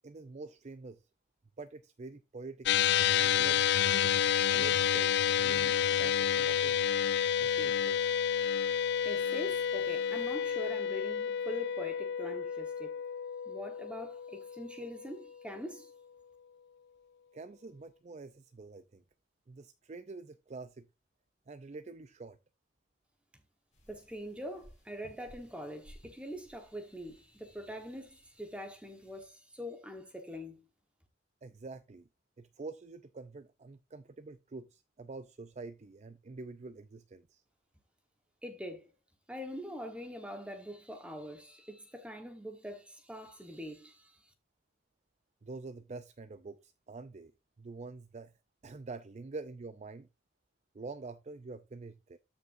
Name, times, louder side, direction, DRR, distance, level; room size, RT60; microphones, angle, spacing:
voice 1, 0.0-1.0 1.6-2.7 3.2-3.7 4.5-6.8 7.4-8.1 17.3-19.0 19.5-20.9 21.5-22.4 31.4-32.1 32.4-37.4 45.4-47.3 47.6-48.3 48.6-50.1 50.7-52.2, right 3 dB, 35° right, 0.4 m, -46 dB
sound 1, 2.7-15.2, left 9 dB, 60° left, 0.4 m, -30 dB
voice 2, 8.4-12.9 13.5-15.9 23.9-30.6 38.4-38.9 39.3-44.3, equal, 5° right, 1.2 m, -43 dB
sound 2, 23.7-29.3, equal, 40° left, 6.5 m, -60 dB
13.0 x 5.9 x 2.6 m
head